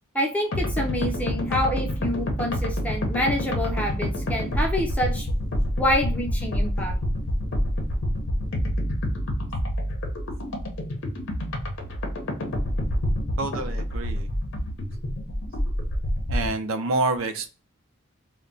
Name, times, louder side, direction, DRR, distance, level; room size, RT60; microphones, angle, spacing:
voice 1, 0.1-5.3 5.8-6.9, left 1 dB, 5° left, 0 dB, 0.6 m, -27 dB
sound 1, 0.5-16.5, equal, 60° left, 0.6 m, -27 dB
voice 2, 13.4-14.3 16.3-17.5, right 3 dB, 75° right, 7 dB, 0.5 m, -27 dB
2.2 x 2.1 x 3.7 m, 0.33 s
head